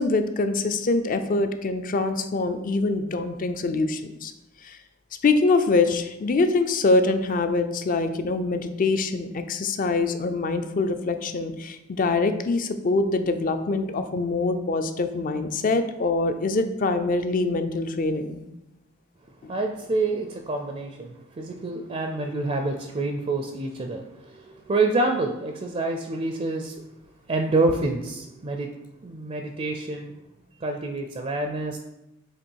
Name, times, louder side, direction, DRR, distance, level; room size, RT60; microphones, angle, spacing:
voice 1, 0.0-4.3 4.6-4.8 5.2-18.4 19.4-19.5, left 3 dB, 40° left, 9 dB, 0.5 m, -24 dB
voice 2, 19.5-26.7 27.3-28.7 29.0-30.1 30.6-31.8, right 2 dB, 30° right, 4 dB, 0.4 m, -27 dB
6.8 x 3.1 x 4.6 m, 0.92 s
head